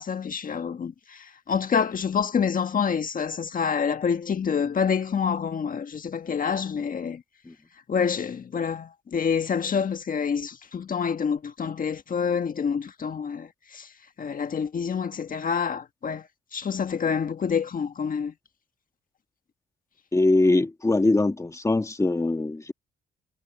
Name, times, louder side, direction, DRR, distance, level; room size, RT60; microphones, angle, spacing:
voice 1, 0.0-7.2 7.9-13.9 14.2-18.3, left 6 dB, 45° left, 1.5 m, -27 dB
voice 2, 20.1-22.7, left 2 dB, 15° left, 1.7 m, -22 dB
cardioid pair, 90°, 20 cm